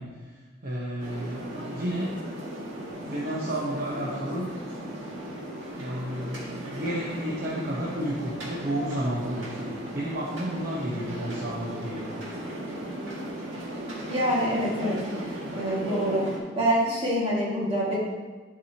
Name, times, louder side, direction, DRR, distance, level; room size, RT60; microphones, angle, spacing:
voice 1, 0.0-2.2 2.9-4.5 5.8-12.1, equal, 50° right, -5 dB, 0.9 m, -32 dB
sound 1, 1.0-16.4, right 1 dB, 85° right, 1.9 m, -36 dB
voice 2, 14.1-15.0 15.5-16.2 16.6-18.0, equal, 30° right, -6 dB, 1.9 m, -25 dB
11.5 x 4.8 x 2.9 m, 1.4 s
head